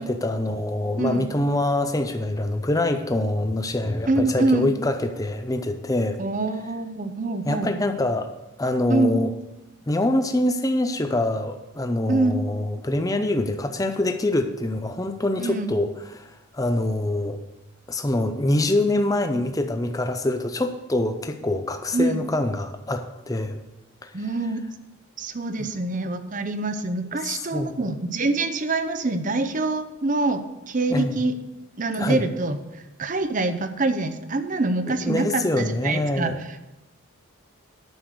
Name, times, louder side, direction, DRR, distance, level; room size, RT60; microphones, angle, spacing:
voice 1, 0.0-6.2 7.5-8.3 8.6-9.3 9.9-15.9 16.1-17.4 17.9-23.6 27.3-27.9 30.9-31.2 32.0-32.2 34.9-36.4, left 1 dB, 15° left, 7 dB, 0.5 m, -25 dB
voice 2, 1.0-1.3 4.1-4.8 6.2-7.7 8.9-9.2 12.1-12.5 15.4-15.7 21.9-22.2 24.1-24.6 25.2-31.4 31.8-36.6, right 2 dB, 40° right, 9 dB, 0.7 m, -25 dB
9.4 x 6.7 x 6.5 m, 0.99 s
head